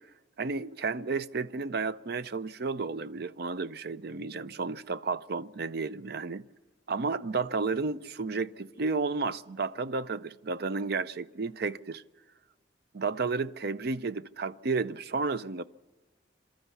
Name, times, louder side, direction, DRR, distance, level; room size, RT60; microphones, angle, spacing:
voice 1, 0.4-6.5 6.9-12.0 12.9-15.6, right 4 dB, 55° right, 0.5 m, -32 dB
24.0 x 13.0 x 8.3 m
head